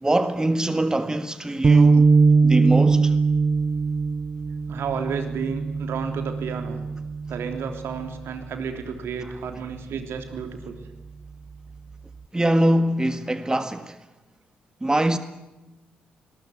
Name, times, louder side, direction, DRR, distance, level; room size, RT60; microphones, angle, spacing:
voice 1, 0.0-2.1 2.4-3.2 12.3-14.0 14.8-15.2, right 1 dB, 15° right, 1.7 m, -23 dB
sound 1, 1.6-8.1, right 4 dB, 35° right, 1.0 m, -21 dB
voice 2, 4.7-6.8 7.3-10.8, right 6 dB, 55° right, 3.4 m, -31 dB
26.0 x 21.0 x 9.5 m
figure-of-eight pair, 40°, 5 cm